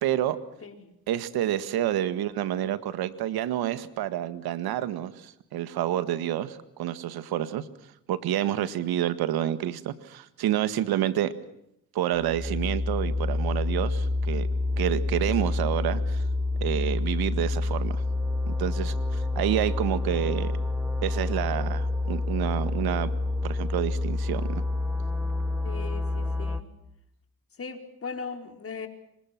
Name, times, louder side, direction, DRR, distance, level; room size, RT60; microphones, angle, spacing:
voice 1, 0.0-0.4 1.1-7.7 8.1-11.3 11.9-14.5 14.8-16.2 16.6-18.0 18.5-20.5 21.0-23.1 23.4-24.6, right 12 dB, 90° right, 13 dB, 1.8 m, -28 dB
sound 1, 12.1-26.6, left 2 dB, 5° right, 2.3 m, -28 dB
voice 2, 25.6-26.7 27.6-28.9, left 5 dB, 40° left, 6 dB, 4.7 m, -38 dB
29.0 x 25.5 x 6.0 m, 0.79 s
cardioid pair, 85°, 36 cm